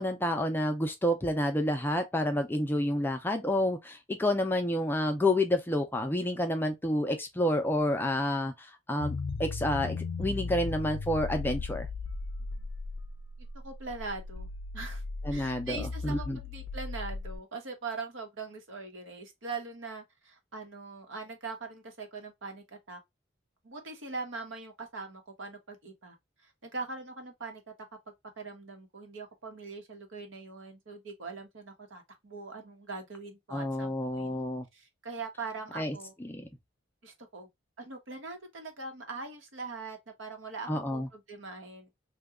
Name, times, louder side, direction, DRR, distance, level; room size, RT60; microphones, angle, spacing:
voice 1, 0.0-11.9 15.2-16.4 33.5-34.7 35.8-35.9 36.2-36.5 40.7-41.1, left 1 dB, 10° left, 0.4 m, -29 dB
sound 1, 9.0-17.4, left 4 dB, 70° left, 0.4 m, -37 dB
voice 2, 13.6-14.5 14.7-15.0 15.3-23.0 23.6-26.2 26.4-27.6 28.4-34.4 34.7-36.1 37.0-37.5 37.8-41.9, right 3 dB, 80° right, 0.9 m, -42 dB
2.8 x 2.2 x 3.5 m
head